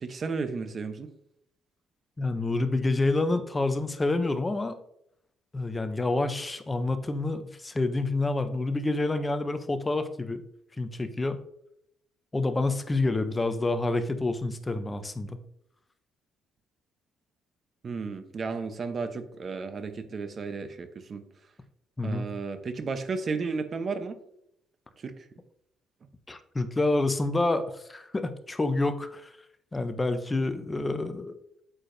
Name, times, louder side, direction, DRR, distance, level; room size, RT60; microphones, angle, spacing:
voice 1, 0.0-1.1 17.8-21.2 22.0-24.2 25.0-25.3, right 4 dB, 30° right, 9 dB, 0.7 m, -33 dB
voice 2, 2.2-4.8 5.5-10.4 10.8-11.4 12.3-15.4 22.0-22.3 26.3-29.3 29.7-31.4, left 2 dB, 15° left, 9 dB, 0.6 m, -28 dB
8.7 x 6.8 x 2.6 m, 0.74 s
cardioid pair, 160°, 0 cm